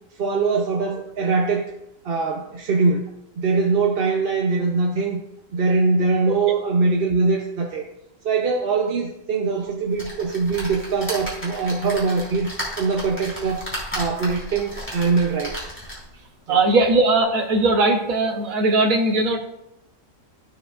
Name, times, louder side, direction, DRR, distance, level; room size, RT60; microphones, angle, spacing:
voice 1, 0.2-1.7 2.0-3.1 3.4-5.2 5.5-7.8 8.2-12.5 12.8-13.6 13.9-15.6 16.5-16.6, right 4 dB, 50° right, 1 dB, 0.8 m, -22 dB
sound 1, 10.0-16.2 16.7-16.8 17.1-17.2, equal, 10° left, 2.8 m, -34 dB
voice 2, 16.5-19.4, right 2 dB, 85° right, 0 dB, 1.3 m, -19 dB
14.0 x 5.2 x 2.4 m, 0.82 s
omnidirectional pair, 1.4 m